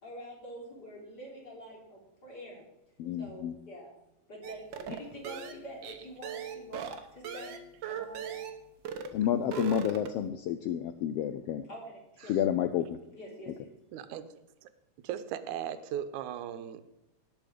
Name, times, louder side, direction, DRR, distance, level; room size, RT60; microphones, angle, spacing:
voice 1, 0.0-2.6 3.2-7.5 7.9-8.4 11.7-12.4 13.1-13.7, equal, 30° left, -3 dB, 4.1 m, -46 dB
voice 2, 3.0-3.5 9.1-11.6 12.3-13.0, left 10 dB, 85° left, 9 dB, 1.3 m, -30 dB
sound 1, 4.4-8.6 8.8-9.2 9.4-10.3, right 7 dB, 60° right, 1.3 m, -39 dB
voice 3, 13.9-14.3 14.6-14.7 15.0-16.8, right 10 dB, 85° right, 11 dB, 2.2 m, -37 dB
18.0 x 6.3 x 5.0 m, 0.89 s
omnidirectional pair, 3.4 m